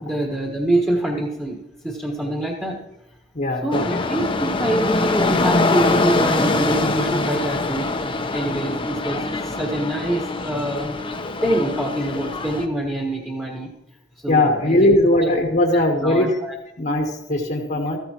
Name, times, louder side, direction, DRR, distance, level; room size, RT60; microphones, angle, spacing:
voice 1, 0.0-2.8 3.6-10.9 11.4-13.7 14.2-14.9 15.2-15.3 15.7-16.5, right 1 dB, 10° right, -2 dB, 1.5 m, -25 dB
voice 2, 3.3-3.8 14.3-16.4 16.8-18.0, left 1 dB, 50° left, 1 dB, 1.3 m, -19 dB
sound 1, 3.7-12.7, left 2 dB, 30° left, 0.8 m, -23 dB
14.5 x 14.0 x 3.0 m, 0.88 s
head